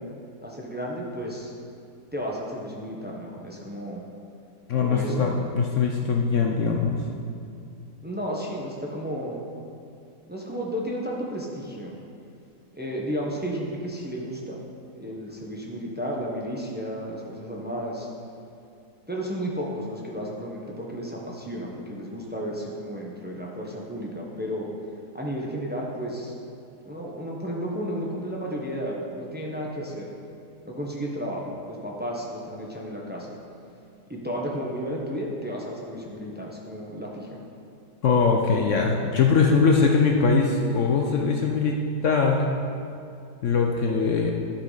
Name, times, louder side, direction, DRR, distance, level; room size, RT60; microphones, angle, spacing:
voice 1, 0.4-1.5 2.1-4.0 4.8-5.3 8.0-9.4 10.3-12.0 12.7-14.6 15.0-18.1 19.1-24.7 25.1-26.3 26.9-30.1 30.6-33.4 34.1-37.4, equal, 10° right, -3 dB, 0.6 m, -33 dB
voice 2, 4.7-7.0 38.0-41.8 42.0-42.5 43.4-44.3, left 5 dB, 65° left, 1 dB, 0.7 m, -21 dB
11.0 x 5.8 x 4.0 m, 2.5 s
omnidirectional pair, 1.9 m